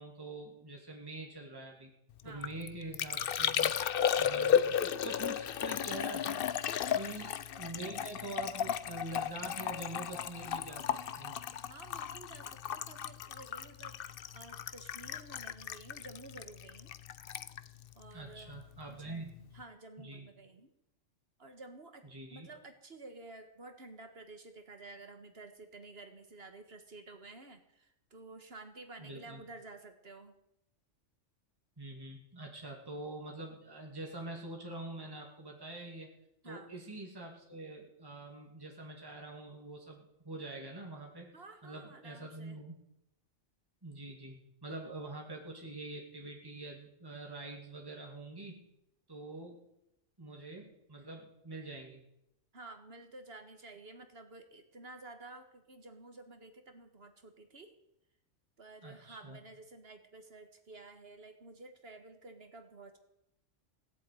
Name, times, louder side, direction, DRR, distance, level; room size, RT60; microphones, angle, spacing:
voice 1, 0.0-1.9 2.2-3.7 4.2-10.9 11.2-11.4 18.1-19.4 20.0-20.3 22.0-22.5 29.0-29.4 31.8-36.1 36.4-41.3 41.6-42.8 43.8-48.6 49.1-49.6 50.2-52.0 58.8-59.4, right 2 dB, 20° right, 0 dB, 2.5 m, -45 dB
Liquid, 2.2-18.8 19.1-19.6, left 8 dB, 55° left, 0.8 m, -35 dB
voice 2, 2.2-2.6 4.3-4.5 6.8-7.1 11.7-16.9 18.0-18.6 18.9-19.1 19.5-20.7 21.4-30.3 36.4-36.7 41.3-42.6 52.5-57.7 58.6-63.0, right 3 dB, 55° right, 7 dB, 1.9 m, -52 dB
17.0 x 7.8 x 9.3 m, 0.82 s
omnidirectional pair, 1.3 m